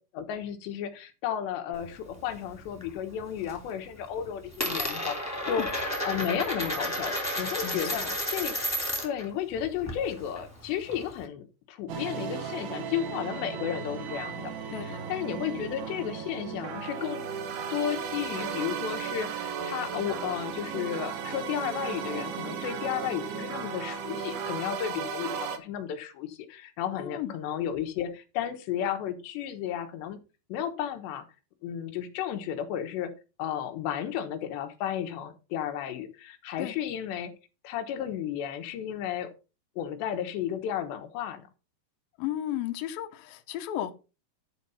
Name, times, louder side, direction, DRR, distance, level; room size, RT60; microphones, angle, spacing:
voice 1, 0.1-5.7 6.0-8.6 9.0-14.5 14.8-17.2 17.7-30.2 30.5-31.3 31.6-33.1 33.4-37.3 37.6-39.3 39.8-41.5, left 9 dB, 90° left, 3.4 m, -33 dB
Coin (dropping), 1.7-2.9 3.2-3.7 4.0-9.3 9.5-11.2, equal, 5° left, 1.9 m, -32 dB
voice 2, 7.6-8.2 14.7-15.1 27.0-27.4 36.6-36.7 42.2-43.9, left 12 dB, 70° left, 2.4 m, -34 dB
sound 1, 11.9-25.6, right 7 dB, 65° right, 2.2 m, -35 dB
11.0 x 4.7 x 5.5 m
omnidirectional pair, 4.8 m